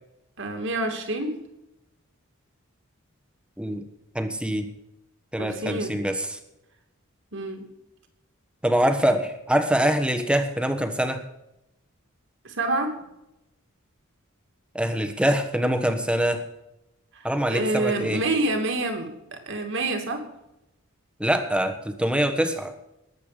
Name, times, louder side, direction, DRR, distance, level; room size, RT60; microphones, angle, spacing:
voice 1, 0.4-1.4 5.4-6.0 7.3-7.7 12.4-13.0 17.1-20.3, right 2 dB, 60° right, 5 dB, 2.6 m, -28 dB
voice 2, 4.1-4.7 5.3-6.4 8.6-11.2 14.7-16.4 17.2-18.2 21.2-22.7, right 1 dB, 5° right, 8 dB, 1.3 m, -24 dB
20.0 x 8.2 x 5.1 m, 0.90 s
head